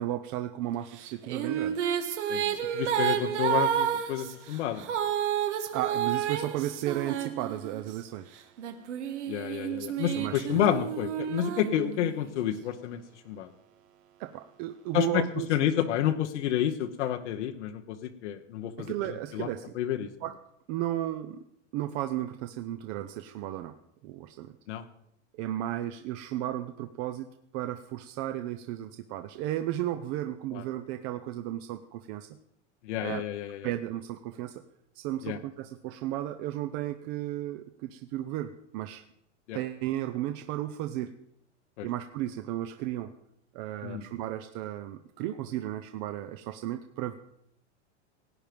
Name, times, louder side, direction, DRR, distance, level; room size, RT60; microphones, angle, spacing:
voice 1, 0.0-1.8 5.7-8.3 10.1-10.6 14.2-15.5 18.8-19.7 20.2-20.4 20.7-21.4 21.7-23.7 24.0-24.5 25.4-32.3 33.0-33.2 33.6-34.6 35.0-39.0 39.5-41.1 41.8-43.1 43.5-47.1, right 13 dB, 50° right, 9 dB, 0.8 m, -34 dB
sound 1, 1.0-8.0 8.6-12.3, right 9 dB, 85° right, 1.6 m, -31 dB
voice 2, 2.3-4.8 9.3-13.0 13.3-13.5 14.9-15.2 15.5-18.9 19.3-19.5 19.8-20.1 24.7-24.8 30.5-30.6 32.9-33.7 35.2-35.4 39.5-39.6 41.8-41.9 43.8-44.0, left 11 dB, 80° left, 5 dB, 1.2 m, -29 dB
17.5 x 9.2 x 5.1 m, 0.76 s
supercardioid pair, 135°, 34 cm